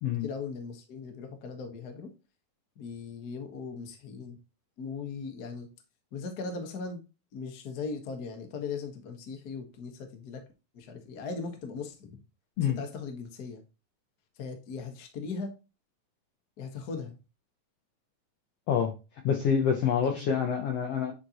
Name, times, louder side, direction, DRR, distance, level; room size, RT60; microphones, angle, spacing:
voice 1, 0.2-2.1 2.7-4.4 4.8-5.7 6.1-7.0 7.3-10.4 10.7-12.2 12.6-13.6 14.4-15.5 16.6-17.2 20.0-20.3, left 4 dB, 70° left, 4 dB, 0.9 m, -38 dB
voice 2, 19.2-21.1, left 7 dB, 90° left, 3 dB, 1.3 m, -26 dB
9.5 x 4.0 x 2.9 m, 0.29 s
omnidirectional pair, 4.0 m